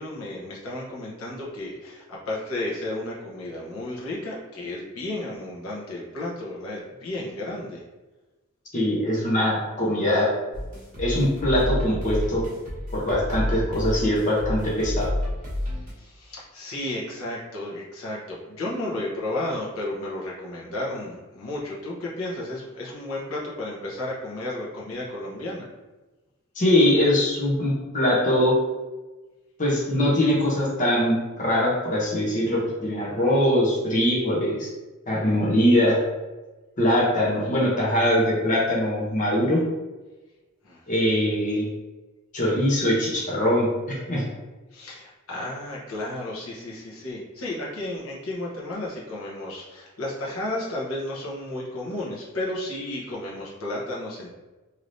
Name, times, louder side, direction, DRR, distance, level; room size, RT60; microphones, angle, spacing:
voice 1, 0.0-7.8 15.6-25.7 40.6-40.8 44.7-54.3, left 1 dB, 90° left, -5 dB, 0.9 m, -33 dB
voice 2, 8.7-10.3 11.0-12.4 12.9-15.1 26.5-28.5 29.6-34.7 35.1-36.0 36.8-39.6 40.9-41.7 42.3-44.3, left 1 dB, 35° left, -5 dB, 0.8 m, -22 dB
sound 1, 10.5-15.9, left 1 dB, 40° right, 1.1 m, -29 dB
3.2 x 2.8 x 2.6 m, 1.2 s
head